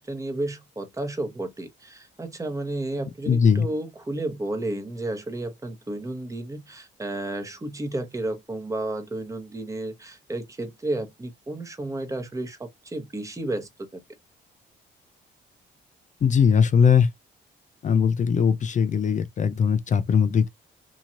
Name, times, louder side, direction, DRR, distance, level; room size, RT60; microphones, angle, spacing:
voice 1, 0.1-14.0, right 2 dB, 15° right, 0.9 m, -32 dB
voice 2, 3.3-3.7 16.2-17.1 17.8-20.5, left 6 dB, 40° left, 0.4 m, -20 dB
2.9 x 2.7 x 2.4 m
cardioid pair, 90°, 20 cm